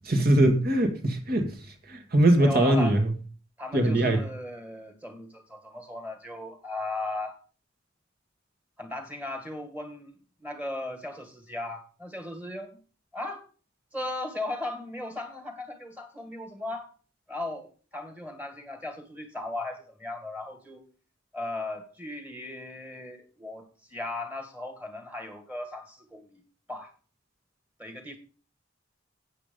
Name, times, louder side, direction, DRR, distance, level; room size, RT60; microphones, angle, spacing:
voice 1, 0.1-1.5 1.9-3.1 3.7-4.2, right 1 dB, 55° right, 1.8 m, -21 dB
voice 2, 2.4-3.0 3.6-7.4 8.8-10.1 10.4-12.7 13.1-13.4 13.9-16.9 17.3-20.8 21.3-26.4 26.7-26.9 27.8-28.2, left 2 dB, 10° right, 1.8 m, -37 dB
8.5 x 8.2 x 5.2 m
head